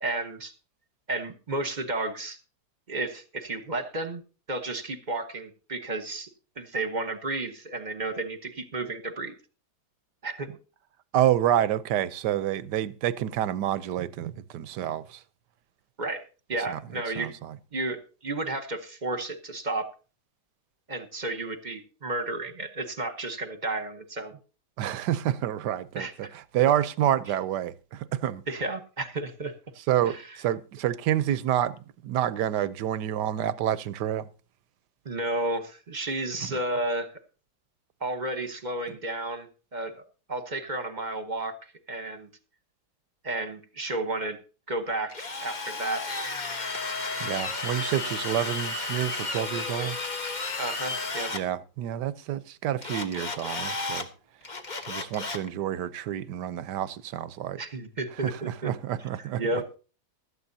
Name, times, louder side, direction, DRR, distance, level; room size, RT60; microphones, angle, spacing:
voice 1, 0.0-0.5 1.1-2.4 2.9-4.2 4.5-6.3 6.6-9.3 10.2-10.5 16.0-17.3 17.7-19.9 20.9-24.4 25.9-26.4 28.5-29.5 30.1-30.2 35.0-37.1 38.0-41.5 41.9-42.3 43.2-44.4 44.7-46.0 50.6-51.3 57.6-58.7 59.4-59.8, right 2 dB, 30° right, 1.1 m, -32 dB
voice 2, 11.1-15.2 16.7-16.8 17.2-17.6 24.8-28.4 29.9-34.3 47.2-50.0 51.3-54.1 54.9-57.6 58.2-59.4, right 11 dB, 85° right, 1.4 m, -28 dB
Drill, 45.1-51.4 52.8-54.1 54.4-55.5, left 3 dB, 30° left, 1.2 m, -33 dB
16.5 x 12.5 x 2.8 m
omnidirectional pair, 1.8 m